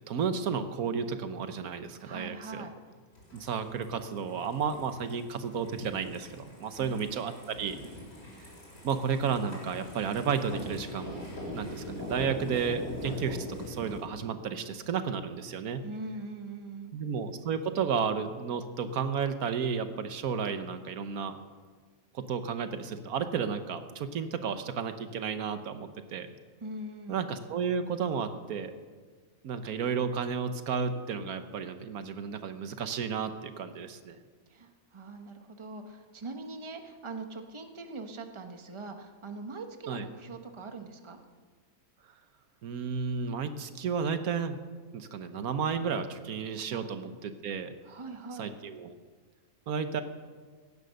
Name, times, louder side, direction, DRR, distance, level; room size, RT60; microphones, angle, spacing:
voice 1, 0.0-2.6 3.3-7.8 8.8-15.8 16.9-21.4 22.1-26.3 27.1-28.7 29.4-34.2 39.9-40.0 42.6-44.6 44.9-47.7 48.4-48.9 49.7-50.0, right 6 dB, 90° right, 9 dB, 1.4 m, -32 dB
voice 2, 2.0-2.7 6.8-7.1 15.8-17.0 26.6-27.3 34.5-41.2 46.7-46.8 47.8-48.5, right 3 dB, 25° right, 5 dB, 1.1 m, -42 dB
sound 1, 3.1-14.0, left 1 dB, 85° left, 5.6 m, -42 dB
16.0 x 10.5 x 6.5 m, 1.5 s
omnidirectional pair, 1.5 m